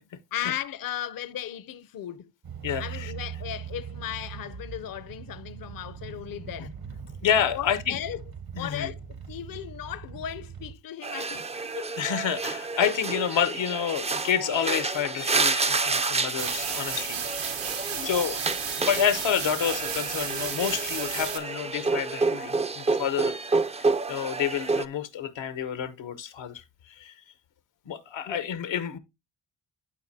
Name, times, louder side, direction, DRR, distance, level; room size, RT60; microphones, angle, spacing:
voice 1, 0.3-2.3 2.8-6.7 7.5-8.2 8.6-12.0 17.9-18.1 28.3-28.5, left 11 dB, 50° left, 0.6 m, -36 dB
sound 1, 2.4-10.7, right 7 dB, 50° right, 0.9 m, -41 dB
voice 2, 2.6-3.1 6.6-6.7 7.2-8.0 8.6-8.9 12.0-18.4 18.8-23.4 23.8-27.1 27.9-29.0, left 8 dB, 85° left, 0.9 m, -29 dB
sound 2, 11.0-24.9, right 3 dB, 15° right, 0.4 m, -29 dB
sound 3, 16.4-21.4, right 7 dB, 80° right, 1.2 m, -33 dB
11.5 x 4.4 x 2.7 m
cardioid pair, 70°, 44 cm